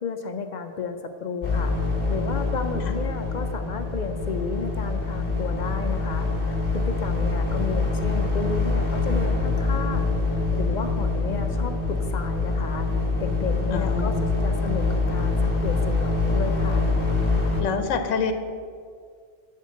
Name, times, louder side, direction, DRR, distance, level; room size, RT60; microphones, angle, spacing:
voice 1, 0.0-1.7 2.1-10.1 10.5-12.9 13.2-14.1 14.4-16.9, left 5 dB, 60° left, 6 dB, 0.5 m, -32 dB
sound 1, 1.4-17.6, left 3 dB, 20° left, 1.6 m, -25 dB
voice 2, 13.7-14.3 17.6-18.3, left 5 dB, 80° left, 8 dB, 1.0 m, -26 dB
8.3 x 4.5 x 7.0 m, 2.1 s
omnidirectional pair, 1.3 m